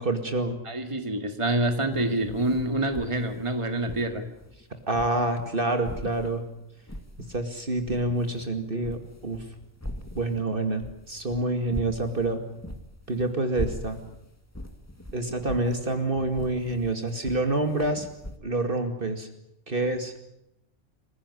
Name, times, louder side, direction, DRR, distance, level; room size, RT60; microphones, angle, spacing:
voice 1, 0.0-0.6 4.9-6.4 7.3-9.4 10.1-12.4 13.1-14.0 15.1-18.1 18.4-19.3 19.7-20.1, right 2 dB, 45° right, 6 dB, 2.5 m, -27 dB
voice 2, 0.6-4.3, right 1 dB, 25° right, 6 dB, 2.3 m, -27 dB
sound 1, 1.9-5.5 5.8-7.5 7.7-18.4, left 1 dB, 10° left, 2.1 m, -41 dB
26.5 x 16.0 x 9.9 m, 0.84 s
omnidirectional pair, 1.3 m